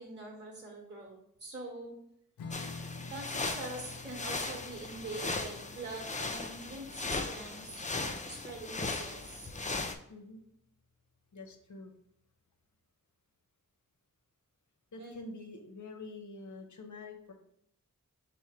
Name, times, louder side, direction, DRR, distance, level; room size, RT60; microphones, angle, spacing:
voice 1, 0.0-2.0 3.1-9.5 15.0-15.3, right 2 dB, 30° right, -1 dB, 1.2 m, -44 dB
Strum, 2.4-9.2, left 3 dB, 90° left, 0.5 m, -49 dB
sound 1, 2.5-9.9, left 3 dB, 20° left, 0.4 m, -38 dB
voice 2, 10.1-10.4 11.3-11.9 14.9-17.3, left 3 dB, 60° left, 5 dB, 0.7 m, -47 dB
4.7 x 2.1 x 4.3 m, 0.74 s
cardioid pair, 45°, 34 cm